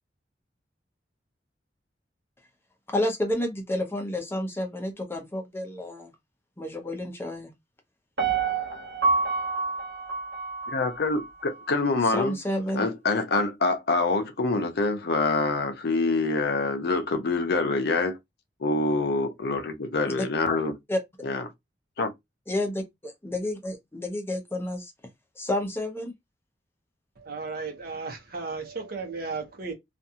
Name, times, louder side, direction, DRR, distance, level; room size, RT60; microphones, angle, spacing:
voice 1, 2.9-6.1 6.6-7.5 12.1-12.8 20.0-20.2 20.9-21.0 22.5-24.9 25.4-26.1, left 1 dB, 15° left, 0.7 m, -30 dB
Piano, 8.2-11.3 11.7-11.8, right 4 dB, 80° right, 1.1 m, -27 dB
voice 2, 10.7-12.4 12.8-18.2 18.6-20.8 21.2-21.5 22.0-22.1, left 3 dB, 65° left, 0.6 m, -26 dB
voice 3, 27.2-29.7, right 4 dB, 60° right, 0.9 m, -35 dB
2.5 x 2.3 x 2.7 m
head